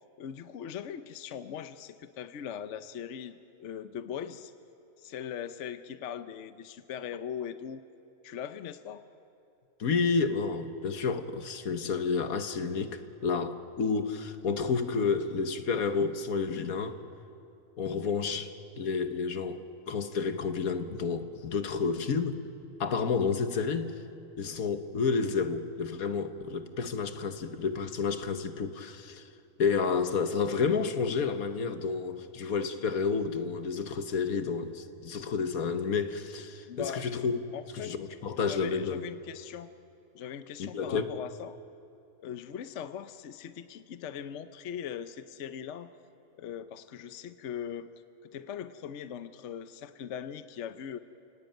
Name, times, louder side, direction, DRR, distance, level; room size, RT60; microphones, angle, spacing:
voice 1, 0.2-4.5 5.0-7.8 8.2-9.0 36.7-37.0 37.5-37.9 38.4-39.7 40.1-41.6 42.2-45.9 46.4-47.9 48.3-51.0, left 8 dB, 60° left, 11 dB, 1.0 m, -40 dB
voice 2, 9.8-17.0 17.8-22.4 22.8-23.9 24.4-29.3 29.6-37.4 37.7-39.0 40.6-41.1, left 5 dB, 80° left, 9 dB, 1.6 m, -30 dB
29.5 x 18.0 x 9.2 m, 2.7 s
omnidirectional pair, 1.5 m